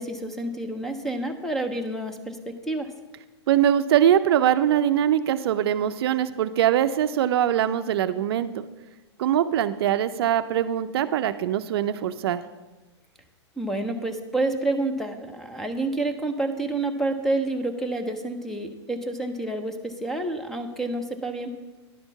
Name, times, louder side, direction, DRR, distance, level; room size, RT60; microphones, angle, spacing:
voice 1, 0.0-2.4 2.7-2.9 13.6-21.5, right 2 dB, 5° left, 6 dB, 0.5 m, -28 dB
voice 2, 3.5-8.6 9.2-12.4, right 10 dB, 60° right, 11 dB, 0.4 m, -22 dB
10.5 x 4.4 x 7.0 m, 1.2 s
hypercardioid pair, 140°, 15 cm